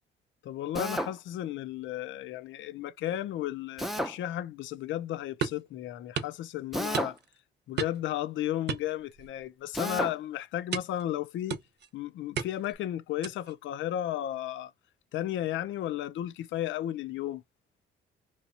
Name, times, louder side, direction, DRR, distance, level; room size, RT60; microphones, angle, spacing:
voice 1, 0.4-7.2 7.7-11.6 11.9-14.7 15.1-17.4, left 12 dB, 75° left, 0.5 m, -34 dB
Drill, 0.7-1.1 3.8-4.1 6.7-7.2 9.7-10.1, equal, ahead, 0.5 m, -31 dB
sound 1, 5.4-5.7 6.2-6.4 6.9-7.4 7.8-8.1 8.7-9.4 9.8-10.0 10.7-11.0 11.5-11.9 12.4-12.7 13.2-13.5, right 7 dB, 60° right, 0.7 m, -35 dB
3.0 x 2.3 x 4.0 m
cardioid pair, 90°, 20 cm